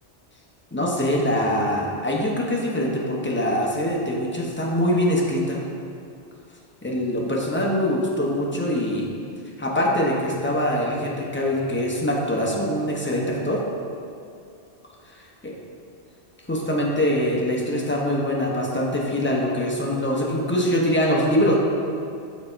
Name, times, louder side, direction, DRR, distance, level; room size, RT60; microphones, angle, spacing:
voice 1, 0.7-5.6 6.8-9.0 9.6-13.6 15.1-15.2 16.5-21.5, left 1 dB, 10° left, -3 dB, 0.6 m, -23 dB
6.6 x 4.1 x 4.4 m, 2.5 s
omnidirectional pair, 1.2 m